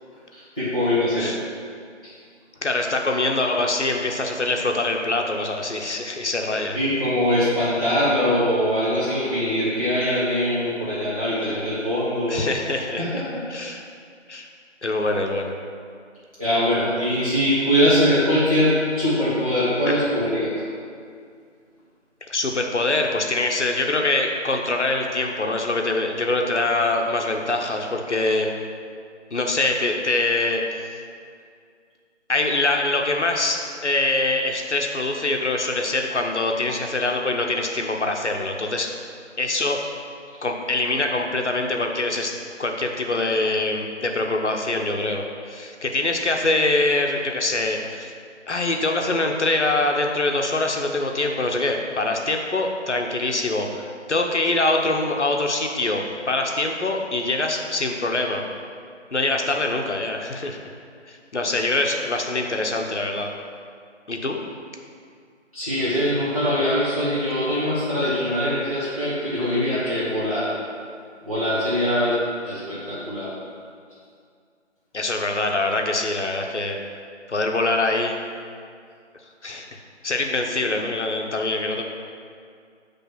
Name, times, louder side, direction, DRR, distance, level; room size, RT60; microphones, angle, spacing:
voice 1, 0.3-1.3 2.0-2.1 6.7-12.4 13.0-13.4 16.4-20.5 65.5-70.5 71.2-73.3, equal, 30° right, -12 dB, 1.0 m, -22 dB
voice 2, 2.6-6.8 12.3-13.1 13.5-13.8 14.3-14.5 14.8-15.5 19.9-20.0 22.3-28.5 29.3-30.9 32.3-38.9 39.4-39.8 40.4-42.3 42.6-48.1 48.5-58.4 59.1-60.6 61.1-63.3 64.1-64.4 74.9-76.8 77.3-78.2 79.4-81.8, left 2 dB, 70° left, 2 dB, 0.9 m, -24 dB
6.2 x 3.3 x 5.9 m, 2.2 s
figure-of-eight pair, 180°, 36 cm